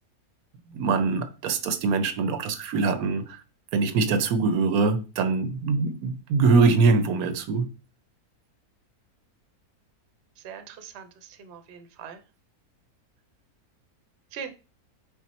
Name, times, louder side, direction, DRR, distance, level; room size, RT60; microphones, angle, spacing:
voice 1, 0.7-3.4 3.7-7.7, right 4 dB, 80° right, 1.0 m, -23 dB
voice 2, 10.4-12.2 14.3-14.5, right 7 dB, 60° right, 0.8 m, -41 dB
5.8 x 2.0 x 4.0 m
omnidirectional pair, 1.6 m